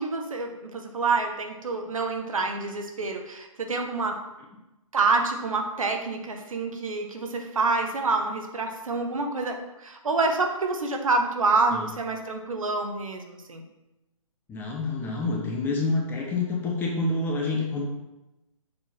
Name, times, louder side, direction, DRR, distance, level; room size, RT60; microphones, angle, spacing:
voice 1, 0.0-4.2 4.9-13.6, right 3 dB, 70° right, 4 dB, 1.1 m, -27 dB
voice 2, 14.5-17.9, left 3 dB, 10° left, 0 dB, 0.7 m, -27 dB
6.8 x 3.8 x 4.3 m, 0.97 s
figure-of-eight pair, 140°, 18 cm